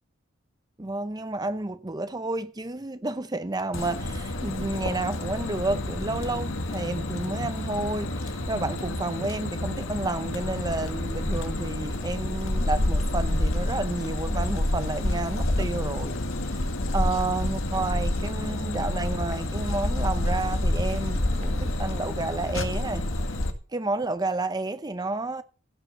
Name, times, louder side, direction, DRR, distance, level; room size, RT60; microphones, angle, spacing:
voice 1, 0.8-16.2 16.5-16.6 16.9-23.1 23.7-25.4, right 2 dB, 20° right, 0.7 m, -31 dB
sound 1, 3.7-23.5, left 1 dB, 80° left, 1.8 m, -28 dB
16.0 x 6.0 x 6.7 m
head